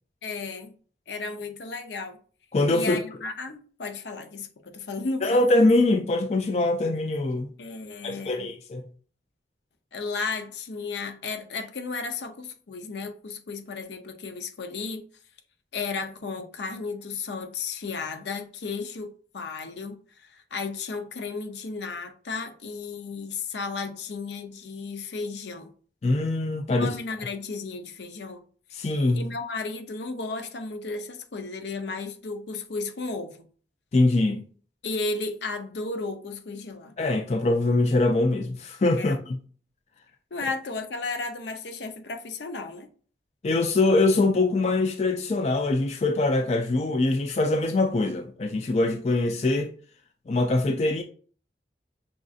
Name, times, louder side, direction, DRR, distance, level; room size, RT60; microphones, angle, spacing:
voice 1, 0.2-0.7 1.1-2.2 2.7-5.4 6.8-6.9 7.6-8.5 9.9-15.0 15.7-25.7 26.7-28.4 29.1-33.5 34.8-36.9 39.0-39.2 40.3-42.9, left 4 dB, 80° left, 0.6 m, -34 dB
voice 2, 2.5-3.0 5.2-7.5 8.0-8.8 26.0-26.9 28.7-29.3 33.9-34.4 37.0-39.4 43.4-49.7 50.3-51.0, left 2 dB, 35° left, 0.3 m, -23 dB
6.1 x 2.6 x 2.4 m
head